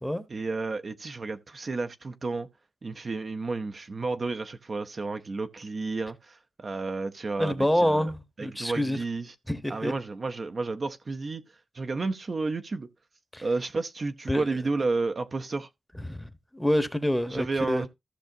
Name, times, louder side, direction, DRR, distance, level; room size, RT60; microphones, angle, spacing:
voice 1, 0.3-2.5 2.8-8.1 8.4-9.3 9.7-11.4 11.7-12.9 13.4-15.7 17.3-17.9, right 3 dB, 45° right, 0.6 m, -31 dB
voice 2, 7.4-9.0 9.5-9.9 13.3-13.4 14.3-14.5 16.0-17.8, left 1 dB, 5° left, 1.0 m, -27 dB
14.5 x 6.1 x 2.7 m
wide cardioid pair, 105°, 0 cm